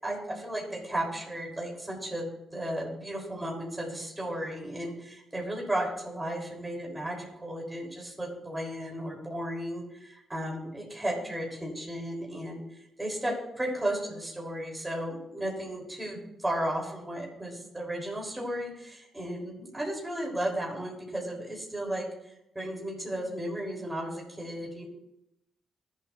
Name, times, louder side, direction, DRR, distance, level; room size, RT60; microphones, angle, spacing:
voice 1, 0.0-24.9, right 1 dB, 15° right, -2 dB, 6.2 m, -34 dB
26.0 x 8.8 x 3.4 m, 0.86 s
supercardioid pair, 55°, 0 cm